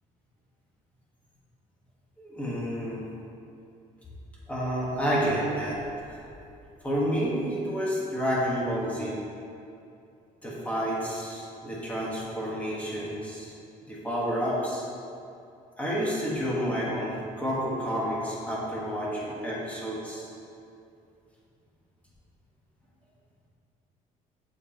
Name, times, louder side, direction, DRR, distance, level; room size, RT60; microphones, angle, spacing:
voice 1, 2.2-3.1 4.5-5.8 6.1-6.2 6.8-9.2 10.4-13.5 13.9-14.9 15.8-20.3, equal, 10° left, -6 dB, 1.7 m, -30 dB
7.2 x 6.6 x 4.4 m, 2.6 s
cardioid pair, 135°, 15 cm